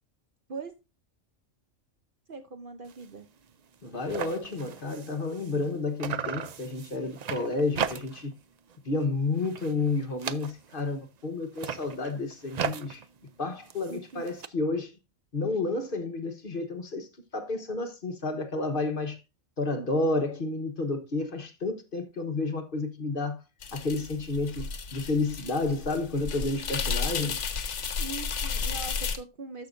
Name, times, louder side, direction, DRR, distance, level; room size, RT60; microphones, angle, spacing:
voice 1, 2.3-3.3 13.9-14.2 28.0-29.7, right 3 dB, 50° right, 0.8 m, -41 dB
sound 1, 2.8-3.1 3.4-3.5 3.7-5.7 6.0-8.4 8.7-9.1 9.4-10.9 11.4-14.5, right 7 dB, 70° right, 0.4 m, -37 dB
voice 2, 3.8-8.3 8.8-13.0 13.4-14.9 15.3-19.2 19.6-23.4 23.7-27.5, left 3 dB, 45° left, 1.3 m, -31 dB
sound 2, 23.6-29.2, left 5 dB, 65° left, 1.3 m, -33 dB
13.5 x 5.8 x 2.6 m
omnidirectional pair, 1.4 m